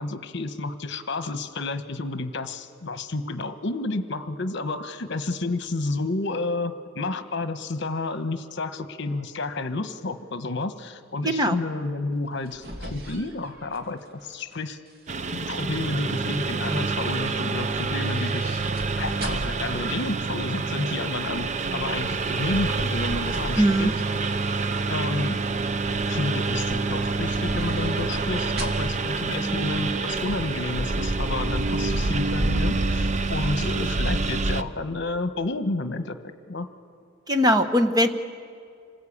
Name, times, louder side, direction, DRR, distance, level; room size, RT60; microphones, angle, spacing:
voice 1, 0.0-14.8 15.3-18.7 19.0-23.9 24.9-25.4 26.1-36.2 36.5-36.7, left 2 dB, 60° left, 9 dB, 1.2 m, -30 dB
voice 2, 11.2-11.6 23.5-23.9 37.3-38.1, equal, 20° right, 7 dB, 1.0 m, -20 dB
sound 1, 12.2-14.5 14.9-15.4 17.6-19.7 22.5-24.7 25.1-25.6 27.0-29.1 29.4-29.5, right 1 dB, 50° right, 2.6 m, -39 dB
Engine, 15.1-34.6, right 3 dB, 35° right, 0.6 m, -27 dB
27.0 x 20.0 x 8.6 m, 2.2 s
head